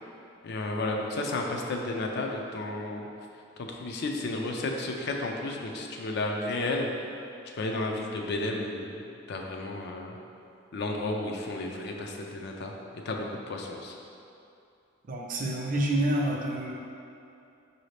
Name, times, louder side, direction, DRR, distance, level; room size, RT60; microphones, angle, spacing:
voice 1, 0.4-3.1 3.6-6.9 7.6-9.0 9.3-10.1 10.7-12.7 13.1-13.9, left 2 dB, 55° left, 1 dB, 0.4 m, -32 dB
voice 2, 15.1-16.7, right 1 dB, 40° right, -1 dB, 0.5 m, -28 dB
4.9 x 2.7 x 3.2 m, 2.6 s
head